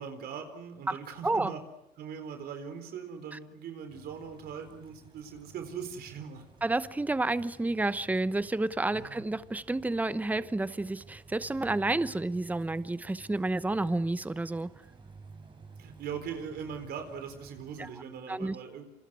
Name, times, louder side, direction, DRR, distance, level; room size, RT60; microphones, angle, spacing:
voice 1, 0.0-1.6 2.0-6.4 8.9-9.3 15.8-18.9, right 7 dB, 70° right, 4.2 m, -40 dB
sound 1, 3.9-17.9, right 4 dB, 30° right, 4.5 m, -53 dB
voice 2, 6.6-14.7 18.3-18.6, right 2 dB, 10° right, 0.9 m, -30 dB
27.5 x 26.5 x 6.3 m
cardioid pair, 110°, 17 cm